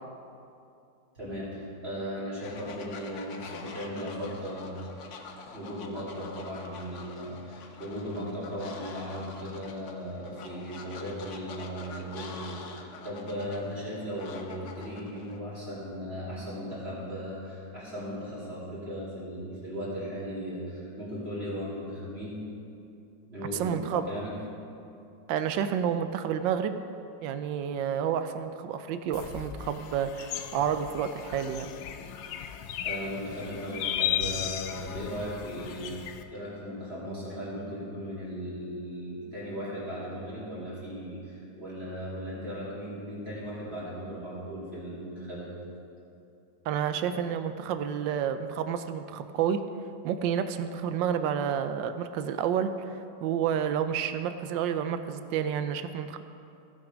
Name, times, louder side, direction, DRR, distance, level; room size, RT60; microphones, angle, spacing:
voice 1, 1.1-4.7 5.5-22.4 23.3-24.4 32.8-45.5, equal, 30° right, -8 dB, 2.9 m, -37 dB
Fowl, 2.4-15.4, left 4 dB, 60° left, 0.8 m, -46 dB
voice 2, 23.5-24.1 25.3-26.8 27.2-31.7 46.7-49.6 50.0-56.2, right 8 dB, 80° right, 9 dB, 1.2 m, -30 dB
sound 1, 29.1-36.2, left 10 dB, 80° left, 1.3 m, -35 dB
16.0 x 6.0 x 5.0 m, 2.7 s
omnidirectional pair, 2.0 m